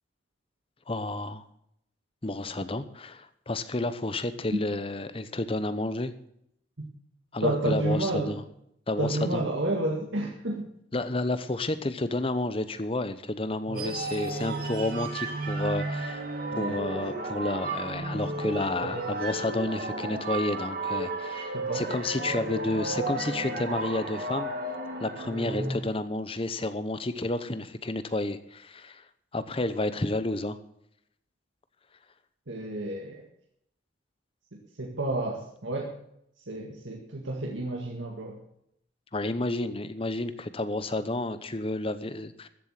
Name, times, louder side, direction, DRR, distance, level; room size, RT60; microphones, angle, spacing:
voice 1, 0.9-1.4 2.2-6.1 7.3-8.4 8.9-9.5 10.9-16.3 16.6-24.5 25.0-29.0 29.3-30.6 39.1-42.5, left 2 dB, 30° left, 12 dB, 0.9 m, -31 dB
voice 2, 7.4-8.3 9.0-10.7 13.7-13.9 16.5-16.8 18.8-19.0 21.5-21.8 32.5-33.2 34.5-35.9 36.5-38.4, right 2 dB, 90° right, 0 dB, 1.8 m, -30 dB
sound 1, 13.7-25.8, right 2 dB, 50° right, 2.4 m, -33 dB
14.0 x 7.6 x 7.4 m, 0.73 s
head